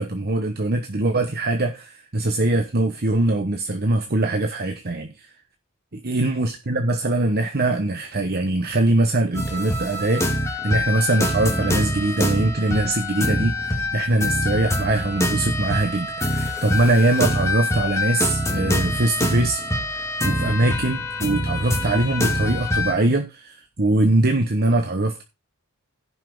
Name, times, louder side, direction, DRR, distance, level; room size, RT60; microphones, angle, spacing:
voice 1, 0.0-5.3 6.0-25.2, right 2 dB, 45° right, 1.1 m, -22 dB
sound 1, 9.3-22.9, left 1 dB, 15° left, 2.1 m, -25 dB
16.0 x 5.6 x 3.9 m
head